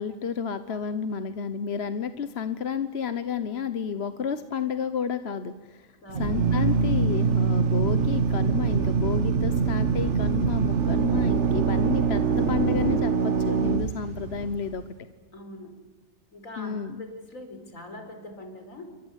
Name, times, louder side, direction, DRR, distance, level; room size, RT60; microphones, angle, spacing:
voice 1, 0.0-5.9 6.2-14.8 16.6-17.0, left 7 dB, 50° left, 11 dB, 1.3 m, -31 dB
voice 2, 6.0-6.4 15.3-15.8 16.3-19.0, left 1 dB, 75° left, 6 dB, 4.8 m, -42 dB
Drill, 6.1-14.7, right 5 dB, 60° right, 1.5 m, -24 dB
29.0 x 24.0 x 8.3 m, 1.2 s
omnidirectional pair, 1.4 m